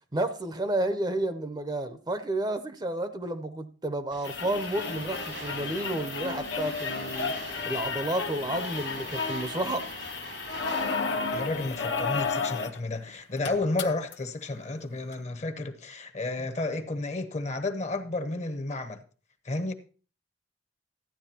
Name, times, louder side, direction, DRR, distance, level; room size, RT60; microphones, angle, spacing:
voice 1, 0.1-7.3 7.7-9.9, right 1 dB, 25° right, 0.5 m, -31 dB
sound 1, 4.1-12.3, right 3 dB, 85° right, 2.0 m, -43 dB
sound 2, 4.2-12.8 13.1-13.2 13.4-14.1 15.1-15.2, left 5 dB, 80° left, 0.9 m, -33 dB
voice 2, 11.3-19.0 19.4-19.7, left 2 dB, 40° left, 0.8 m, -32 dB
13.5 x 9.6 x 2.8 m
head